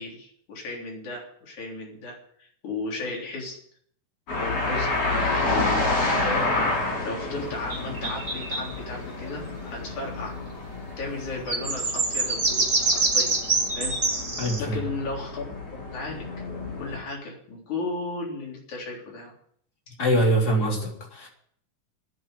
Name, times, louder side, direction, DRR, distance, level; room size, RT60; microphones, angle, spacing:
voice 1, 0.0-3.6 4.3-4.9 5.4-6.5 7.0-10.4 11.0-13.4 13.8-14.2 14.6-15.6 15.9-16.3 16.8-19.3, left 3 dB, 65° left, -1 dB, 5.0 m, -35 dB
sound 1, 4.3-17.0, left 2 dB, 50° left, 7.0 m, -29 dB
sound 2, 7.7-8.7 11.5-14.6, right 3 dB, 25° right, 1.1 m, -25 dB
voice 2, 14.4-14.8 20.0-21.3, right 1 dB, 30° left, -1 dB, 3.9 m, -23 dB
10.5 x 9.5 x 9.8 m, 0.64 s
omnidirectional pair, 3.7 m